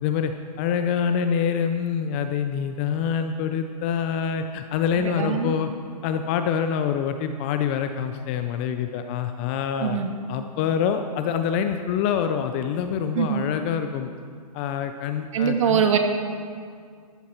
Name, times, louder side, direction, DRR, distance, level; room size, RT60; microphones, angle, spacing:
voice 1, 0.0-0.3 0.6-5.7 6.0-10.0 10.3-14.1 14.5-16.0, left 7 dB, 20° left, 7 dB, 0.3 m, -26 dB
voice 2, 5.0-5.6 9.8-10.1 13.1-13.4 15.3-16.0, right 8 dB, 55° right, 5 dB, 1.6 m, -23 dB
14.0 x 13.5 x 4.3 m, 2.1 s
hypercardioid pair, 150°, 20 cm